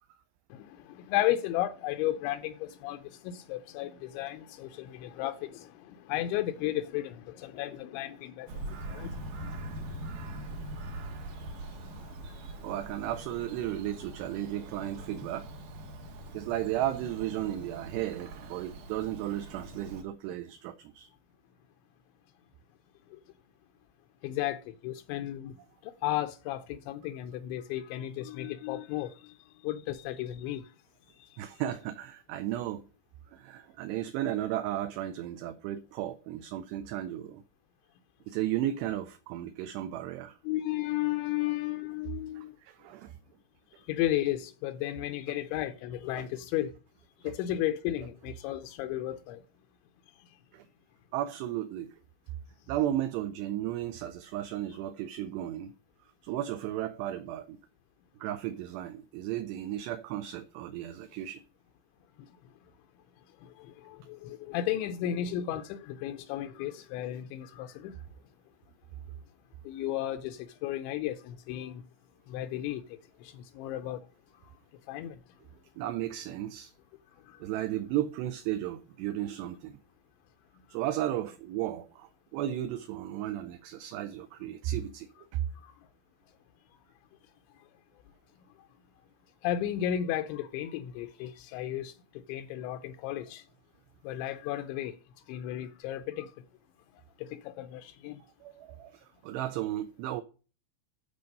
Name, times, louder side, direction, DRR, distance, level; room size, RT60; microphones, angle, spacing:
voice 1, 0.5-3.0 3.2-5.7 6.1-9.1 9.4-9.8 10.3-10.4 24.2-25.5 25.8-29.1 29.6-30.6 40.5-42.5 43.9-46.7 47.2-49.4 63.9-67.9 69.7-71.8 72.3-72.8 73.2-74.0 74.9-75.2 85.7-85.8 89.4-91.9 92.3-93.4 94.0-94.9 95.3-96.3 97.2-98.2, left 13 dB, 85° left, 2.9 m, -34 dB
Bird vocalization bird call bird song, 8.5-20.0, right 1 dB, 65° right, 2.1 m, -42 dB
voice 2, 12.6-15.6 16.3-21.1 31.4-32.8 33.3-37.4 38.3-40.4 42.4-43.2 46.2-46.3 47.2-47.3 50.5-50.7 51.1-52.0 52.7-55.7 56.0-57.6 58.2-61.4 75.8-76.7 77.4-79.8 80.7-85.4 98.4-100.2, right 12 dB, 80° right, 2.5 m, -34 dB
12.0 x 4.3 x 5.3 m
omnidirectional pair, 5.3 m